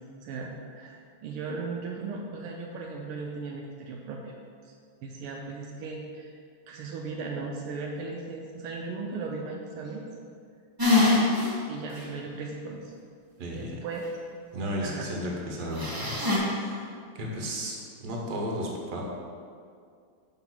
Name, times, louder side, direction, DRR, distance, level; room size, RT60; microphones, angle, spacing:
voice 1, 0.2-4.3 4.6-4.7 5.0-6.3 6.7-10.0 11.7-12.9 13.5-14.0 14.8-15.1, right 4 dB, 80° right, -1 dB, 1.5 m, -37 dB
sound 1, 10.8-11.5 12.0-12.1 15.8-16.4, left 3 dB, 20° right, 0.6 m, -23 dB
voice 2, 13.4-13.7 14.5-19.0, equal, 55° right, -2 dB, 1.6 m, -34 dB
5.9 x 4.3 x 5.9 m, 2.2 s
omnidirectional pair, 2.4 m